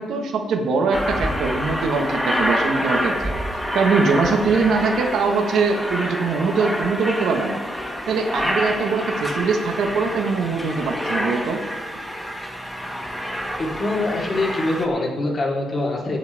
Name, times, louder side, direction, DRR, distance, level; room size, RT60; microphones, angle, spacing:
voice 1, 0.0-3.3 3.7-7.6 8.1-11.6, right 4 dB, 70° right, 2 dB, 1.7 m, -22 dB
Aircraft, 0.9-14.9, equal, 5° left, 1.8 m, -27 dB
voice 2, 13.6-16.2, left 2 dB, 35° left, -4 dB, 3.9 m, -24 dB
24.0 x 8.0 x 3.7 m, 1.3 s
cardioid pair, 90°, 0 cm